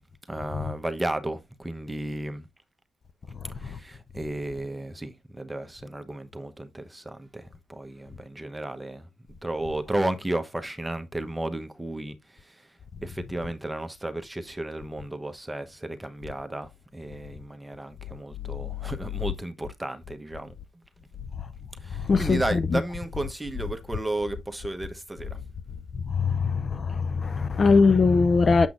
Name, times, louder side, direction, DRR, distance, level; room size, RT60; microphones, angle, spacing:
voice 1, 0.3-2.5 3.5-9.1 9.4-12.7 13.0-20.5 21.0-21.1 21.8-25.4, right 1 dB, 10° right, 0.9 m, -33 dB
voice 2, 22.1-22.4 26.2-28.7, left 4 dB, 40° left, 0.5 m, -20 dB
7.1 x 5.9 x 2.5 m
cardioid pair, 90°, 0 cm